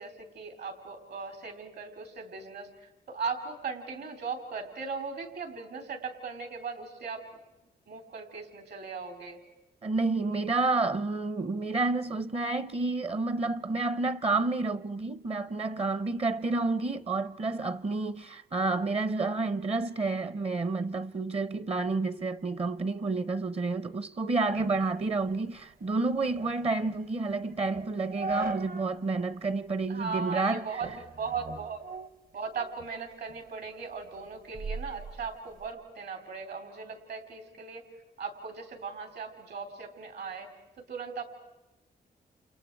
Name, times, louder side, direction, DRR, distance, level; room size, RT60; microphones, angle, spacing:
voice 1, 0.0-7.3 7.9-9.4 29.9-31.8 32.3-37.9 38.2-40.5 40.8-41.2, right 5 dB, 70° right, 3.6 m, -38 dB
voice 2, 9.8-30.8, right 3 dB, 35° right, 0.7 m, -30 dB
sound 1, 24.5-29.0 29.4-29.5 30.1-30.5 30.8-32.9 33.3-35.7, right 3 dB, 55° right, 1.1 m, -40 dB
29.5 x 29.0 x 4.6 m
wide cardioid pair, 110°, 18 cm